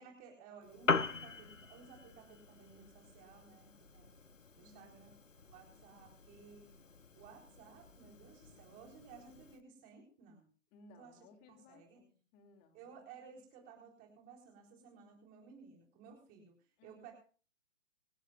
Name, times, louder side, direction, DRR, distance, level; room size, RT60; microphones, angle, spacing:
voice 1, 0.0-4.2 4.6-6.7 7.2-10.5 11.0-11.2 11.7-12.0 12.7-17.1, right 5 dB, 25° right, 4.1 m, -57 dB
Piano, 0.6-9.6, left 4 dB, 85° left, 1.4 m, -42 dB
voice 2, 4.6-5.0 10.7-13.4 16.8-17.1, left 3 dB, 20° left, 2.8 m, -62 dB
26.0 x 12.5 x 2.5 m
figure-of-eight pair, 130°, 38 cm